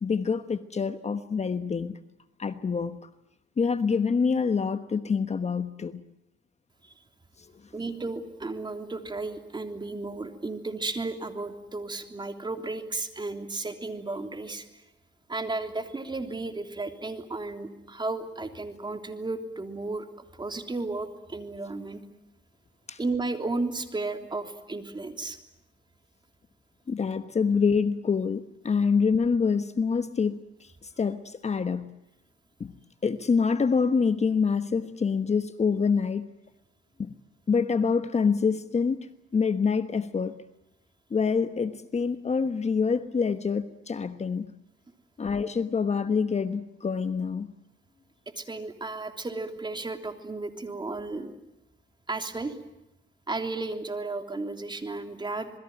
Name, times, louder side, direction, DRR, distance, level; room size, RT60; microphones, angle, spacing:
voice 1, 0.0-2.0 2.4-3.0 3.6-6.0 22.9-23.0 26.9-31.9 32.6-32.7 33.0-36.3 37.0-37.1 37.5-40.4 41.1-44.5 45.2-47.5, left 5 dB, 35° left, 10 dB, 1.2 m, -26 dB
voice 2, 7.7-14.8 15.3-22.0 23.0-25.4 48.3-51.3 52.1-52.6 53.3-55.5, right 3 dB, 20° right, 6 dB, 3.3 m, -34 dB
27.0 x 20.5 x 9.2 m, 0.87 s
cardioid pair, 90°, 20 cm